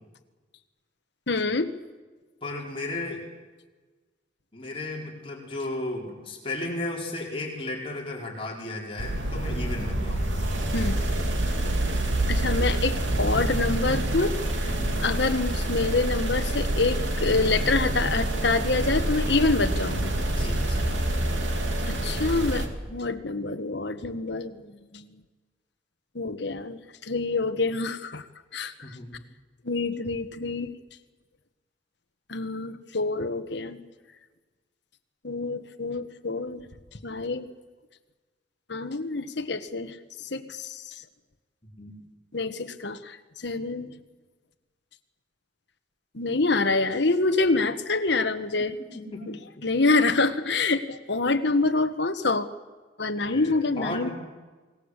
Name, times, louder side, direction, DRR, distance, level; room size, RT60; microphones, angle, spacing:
voice 1, 1.3-1.7 10.7-11.0 12.3-14.4 14.6-14.7 15.0-20.1 21.9-25.1 26.1-28.2 28.5-28.7 29.6-30.7 32.3-33.8 35.2-36.6 37.0-37.5 38.7-39.9 40.3-40.8 42.3-43.2 43.4-43.9 46.1-48.7 49.6-52.5 53.0-54.1, left 3 dB, 65° left, 7 dB, 1.5 m, -26 dB
voice 2, 2.4-3.2 4.5-10.5 12.6-12.7 14.7-15.1 18.8-19.1 20.3-21.0 28.8-29.2 41.8-41.9 48.9-49.3 53.2-54.1, left 2 dB, 30° left, -2 dB, 5.1 m, -35 dB
sound 1, 9.0-22.7, right 1 dB, 85° right, 3.1 m, -27 dB
28.0 x 19.0 x 8.3 m, 1.3 s
head